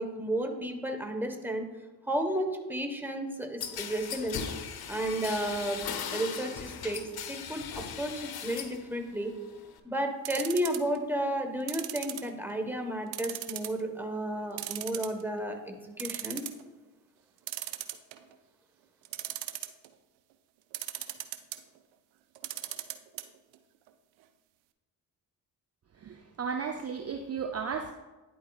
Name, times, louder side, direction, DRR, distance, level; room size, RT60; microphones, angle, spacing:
voice 1, 0.0-1.7 2.1-4.4 4.9-7.6 8.0-9.3 9.8-16.4, right 1 dB, 5° right, 4 dB, 1.3 m, -32 dB
sound 1, 3.6-8.8 9.2-9.8, left 7 dB, 55° left, 0.8 m, -38 dB
sound 2, 10.2-11.0 11.7-12.7 13.1-13.8 14.2-14.3 14.6-15.4 15.7-15.8 16.0-16.6 17.5-18.3 19.0-19.9 20.7-21.6 22.4-23.2 23.5-23.6 23.9-24.0, right 15 dB, 80° right, 0.5 m, -37 dB
voice 2, 26.0-27.9, right 6 dB, 35° right, 6 dB, 0.5 m, -34 dB
11.0 x 4.5 x 2.4 m, 1.1 s
hypercardioid pair, 40°, 45 cm